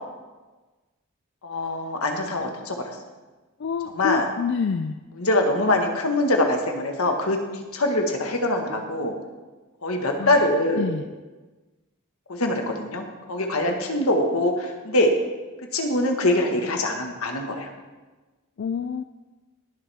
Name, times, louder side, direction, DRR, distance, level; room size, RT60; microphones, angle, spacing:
voice 1, 1.4-2.8 3.9-4.3 5.2-7.4 7.7-9.1 9.8-10.9 12.3-15.1 15.7-17.7, left 1 dB, 80° left, 3 dB, 1.6 m, -23 dB
voice 2, 3.6-5.0 10.2-10.4 10.8-11.1 18.6-19.0, left 5 dB, 55° left, 10 dB, 0.4 m, -27 dB
20.0 x 7.3 x 3.5 m, 1.2 s
head